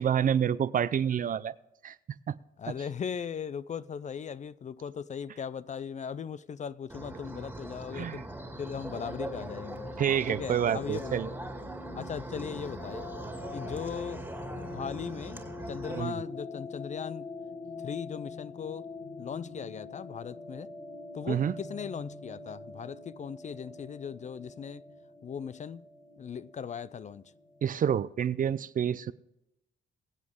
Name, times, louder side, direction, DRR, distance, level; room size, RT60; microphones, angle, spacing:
voice 1, 0.0-1.5 1.8-2.0 2.3-2.4 7.9-8.2 10.0-11.3 16.0-16.2 21.3-21.5 27.6-29.1, right 8 dB, 45° right, 0.5 m, -28 dB
voice 2, 2.6-8.3 8.6-9.9 10.3-11.1 11.9-13.0 13.5-14.2 14.7-17.3 17.8-18.9 19.2-20.7 21.1-24.8 25.2-25.9 26.2-27.2, left 7 dB, 35° left, 0.4 m, -38 dB
sound 1, 6.9-16.0, right 1 dB, 10° right, 2.0 m, -41 dB
sound 2, 8.3-27.8, left 3 dB, 60° left, 2.9 m, -45 dB
22.5 x 7.6 x 3.6 m
cardioid pair, 90°, 20 cm